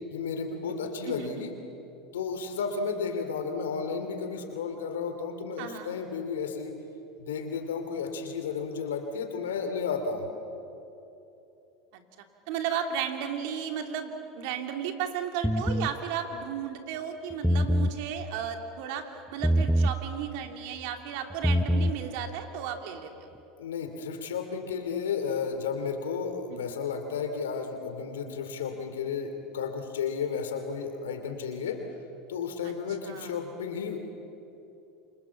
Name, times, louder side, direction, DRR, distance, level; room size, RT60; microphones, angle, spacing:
voice 1, 0.1-1.5 2.1-6.7 7.2-10.2 23.6-31.8 32.3-34.0, left 5 dB, 85° left, 7 dB, 2.9 m, -33 dB
voice 2, 1.0-1.5 5.6-6.0 11.9-12.0 12.5-23.3 26.6-26.8 32.6-32.7 33.0-33.4, right 8 dB, 70° right, 5 dB, 2.7 m, -34 dB
sound 1, 15.4-15.9 17.3-18.0 19.4-20.0 21.3-22.0, equal, ahead, 0.8 m, -24 dB
28.5 x 26.0 x 7.3 m, 2.9 s
hypercardioid pair, 90°, 0 cm